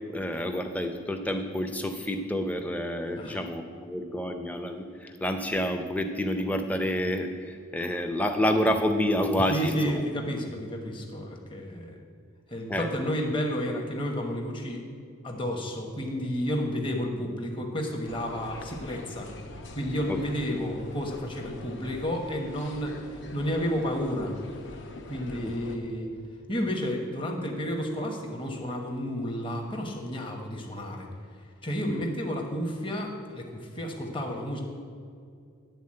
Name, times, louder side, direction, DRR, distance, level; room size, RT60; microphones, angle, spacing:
voice 1, 0.1-10.0 12.7-12.9 20.1-20.2 25.4-25.5, equal, 5° left, 5 dB, 0.5 m, -28 dB
voice 2, 9.5-12.0 12.5-14.8 15.2-19.3 19.7-24.3 25.1-26.1 26.5-31.1 31.6-34.6, equal, 25° left, 2 dB, 1.0 m, -31 dB
sound 1, 18.1-25.8, left 2 dB, 60° left, 0.8 m, -44 dB
10.5 x 4.0 x 7.5 m, 2.3 s
head